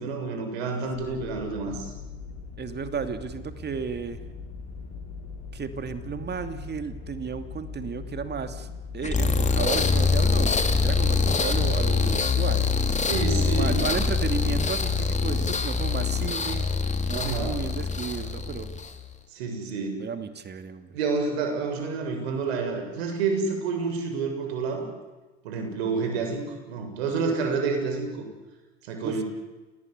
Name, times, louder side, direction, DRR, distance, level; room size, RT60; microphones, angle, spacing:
voice 1, 0.0-1.9 13.0-13.8 17.1-17.6 19.3-20.0 20.9-24.9 25.4-28.3 28.8-29.2, right 4 dB, 75° right, 5 dB, 7.3 m, -29 dB
sound 1, 0.9-9.4, left 5 dB, 55° left, 7.8 m, -40 dB
voice 2, 2.6-4.2 5.5-8.7 8.9-12.7 13.4-18.7 20.0-20.9 25.9-26.0 29.0-29.2, right 6 dB, 30° right, 9 dB, 2.6 m, -34 dB
sound 2, 9.0-19.0, left 4 dB, 20° left, 3.2 m, -24 dB
28.0 x 19.5 x 9.5 m, 1.2 s
hypercardioid pair, 80°, 31 cm